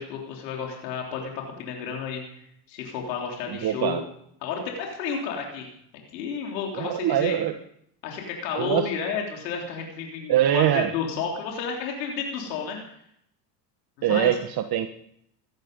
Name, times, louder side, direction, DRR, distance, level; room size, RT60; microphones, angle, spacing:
voice 1, 0.0-4.0 4.4-5.7 6.1-7.4 8.0-12.8 14.0-14.3, left 6 dB, 90° left, 0 dB, 3.6 m, -31 dB
voice 2, 3.6-4.0 6.7-7.5 8.6-8.9 10.3-10.9 14.0-14.9, right 11 dB, 50° right, 8 dB, 1.3 m, -23 dB
17.5 x 14.0 x 5.3 m, 0.70 s
supercardioid pair, 85°, 49 cm